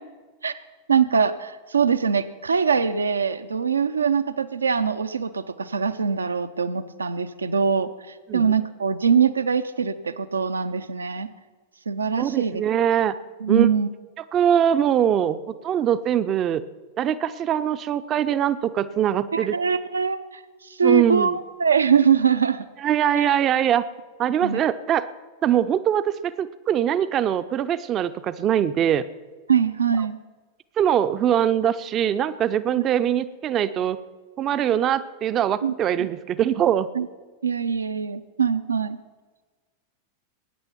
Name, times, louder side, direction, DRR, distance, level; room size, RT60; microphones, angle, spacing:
voice 1, 0.9-7.9 8.3-11.3 11.9-12.6 13.4-13.9 19.3-22.7 23.2-23.3 24.4-24.6 29.5-30.2 32.7-32.8 35.6-35.7 36.0-36.1 36.9-37.1 37.4-39.0, right 6 dB, 75° right, 12 dB, 0.7 m, -23 dB
voice 2, 12.2-13.2 13.5-13.7 14.3-15.4 15.6-16.6 17.0-19.6 20.8-21.4 22.8-23.8 24.2-25.1 25.4-29.0 30.8-34.0 34.4-36.9, right 10 dB, 30° right, 13 dB, 0.6 m, -22 dB
20.5 x 9.5 x 5.9 m, 1.4 s
figure-of-eight pair, 90°, 0 cm